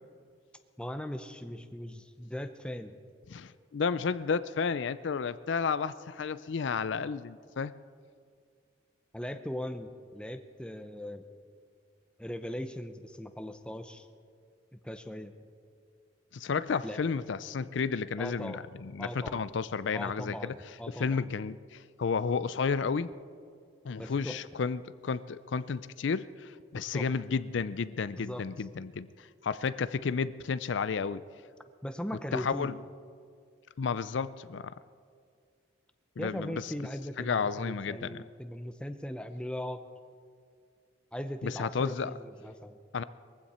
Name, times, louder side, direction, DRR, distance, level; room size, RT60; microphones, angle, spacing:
voice 1, 0.8-2.9 9.1-11.2 12.2-14.1 14.7-15.3 16.8-17.0 18.2-18.6 19.0-19.5 19.9-21.4 24.0-24.4 26.7-27.1 28.2-28.4 31.8-32.7 36.2-39.8 41.1-42.8, equal, 5° left, 7 dB, 0.7 m, -39 dB
voice 2, 3.3-7.7 16.3-20.5 20.9-23.1 23.8-31.2 32.3-32.7 33.8-34.7 36.2-36.7 37.2-38.2 41.4-42.1 42.9-43.0, left 5 dB, 75° left, 16 dB, 0.4 m, -32 dB
22.0 x 15.5 x 4.3 m, 2.2 s
head